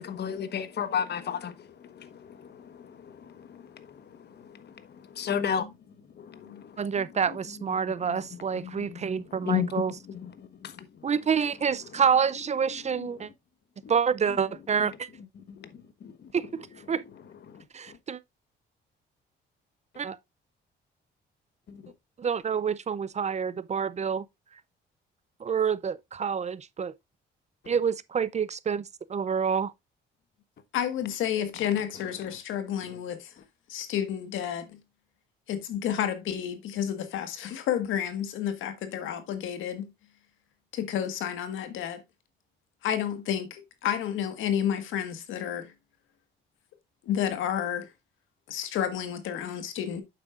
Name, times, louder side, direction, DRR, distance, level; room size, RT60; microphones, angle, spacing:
voice 1, 0.0-1.7 1.9-4.0 4.4-4.7 5.1-5.7 6.2-6.7 8.6-9.0 9.4-9.8 10.2-10.7 13.8-13.9 15.6-15.7 16.0-16.1 17.5-17.6 21.7-21.9, left 8 dB, 55° left, 1.2 m, -33 dB
voice 2, 6.8-9.9 11.0-13.3 13.9-15.1 16.3-17.0 17.7-18.2 20.0-20.2 22.2-24.2 25.4-26.9 27.7-29.7, right 6 dB, 35° right, 0.5 m, -28 dB
voice 3, 30.7-33.3 33.7-34.8 35.5-39.9 40.7-42.0 42.8-45.7 47.0-47.9 48.5-50.0, left 9 dB, 85° left, 1.6 m, -31 dB
8.8 x 7.5 x 2.4 m
cardioid pair, 90°, 20 cm